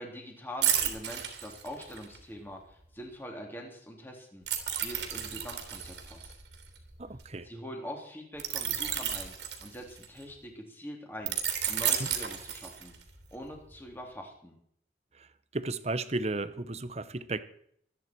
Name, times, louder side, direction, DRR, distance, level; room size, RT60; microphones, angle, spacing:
voice 1, 0.0-6.3 7.4-11.4 11.7-12.9 13.3-14.5, equal, 10° left, 1 dB, 3.4 m, -44 dB
sound 1, 0.6-2.2 4.5-7.2 8.4-10.2 11.3-13.1 13.5-13.7, right 9 dB, 80° right, 3.3 m, -32 dB
voice 2, 7.0-7.5 12.0-12.1 15.1-17.4, right 2 dB, 35° right, 13 dB, 0.9 m, -34 dB
25.0 x 9.7 x 4.6 m, 0.67 s
head